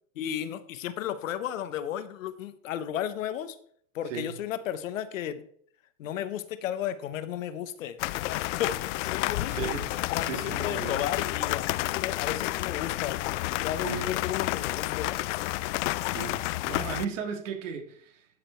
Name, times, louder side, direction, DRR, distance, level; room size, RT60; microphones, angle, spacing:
voice 1, 0.2-3.6 3.9-5.4 6.0-8.0 8.2-9.6 10.1-13.2 13.5-15.2, left 10 dB, 85° left, 1.1 m, -34 dB
sound 1, 8.0-17.1, left 18 dB, 65° left, 0.5 m, -30 dB
voice 2, 9.4-11.0 13.8-14.1 16.1-18.3, right 6 dB, 70° right, 2.2 m, -36 dB
12.0 x 5.2 x 4.5 m
hypercardioid pair, 120°, 38 cm